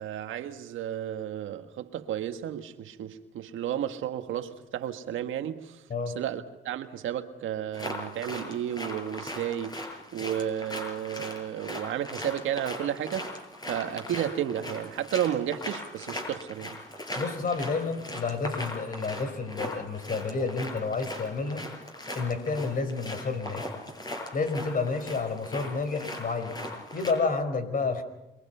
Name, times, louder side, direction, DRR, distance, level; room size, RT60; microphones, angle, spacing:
voice 1, 0.0-9.8 10.1-13.3 13.7-16.8, right 10 dB, 80° right, 1.6 m, -32 dB
sound 1, 7.7-27.1, left 1 dB, 20° left, 7.8 m, -39 dB
voice 2, 17.2-21.6 22.1-23.7 24.3-26.6 26.9-28.0, left 4 dB, 45° left, 4.7 m, -30 dB
28.0 x 22.0 x 5.7 m
cardioid pair, 90°, 20 cm